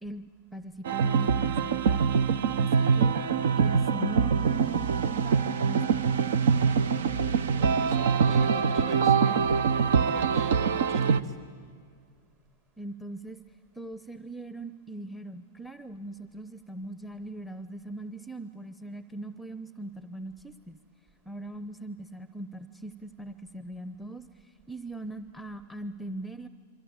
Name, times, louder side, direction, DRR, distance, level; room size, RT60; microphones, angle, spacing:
voice 1, 0.0-2.2 2.6-3.1 3.6-6.0 12.8-13.4 13.8-20.8 21.3-26.5, right 2 dB, ahead, 13 dB, 0.7 m, -40 dB
sound 1, 0.8-11.2, right 6 dB, 65° right, 0.7 m, -24 dB
voice 2, 7.6-9.4 9.7-11.3, right 3 dB, 45° right, 5 dB, 3.8 m, -44 dB
26.5 x 24.0 x 8.8 m, 2.1 s
figure-of-eight pair, 100°, 0 cm